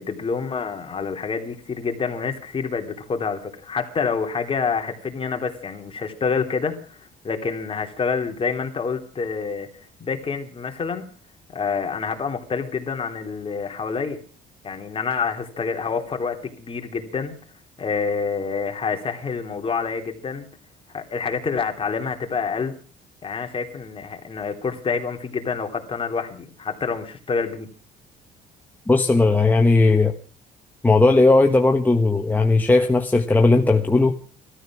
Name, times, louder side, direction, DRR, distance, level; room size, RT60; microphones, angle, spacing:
voice 1, 0.0-9.7 10.0-11.1 11.5-14.2 14.6-17.3 17.8-20.5 20.9-22.7 23.2-27.7, left 5 dB, 30° left, 4 dB, 3.0 m, -27 dB
voice 2, 28.9-30.1 30.8-34.1, left 3 dB, 10° left, 3 dB, 1.3 m, -17 dB
17.5 x 13.5 x 6.1 m, 0.42 s
cardioid pair, 110°, 17 cm